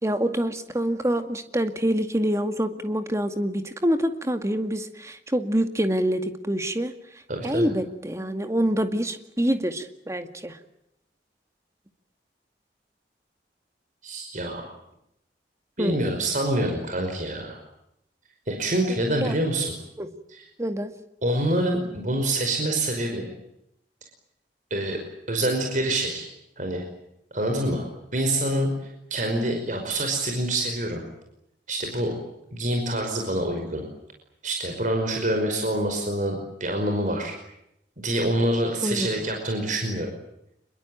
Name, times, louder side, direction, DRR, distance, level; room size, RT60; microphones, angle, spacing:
voice 1, 0.0-6.9 7.4-10.6 15.8-16.0 19.2-19.4 20.0-20.1 20.6-20.9 38.8-39.1, equal, 15° right, 8 dB, 2.1 m, -26 dB
voice 2, 7.3-7.7 14.0-14.6 15.8-17.6 18.5-19.7 20.3-20.4 21.2-23.3 24.7-25.0 25.3-26.3 26.6-26.8 27.3-27.8 28.1-31.0 31.7-32.1 32.5-33.8 34.4-37.3 38.0-40.1, right 1 dB, 45° right, 3 dB, 5.4 m, -26 dB
26.5 x 22.5 x 9.0 m, 0.80 s
head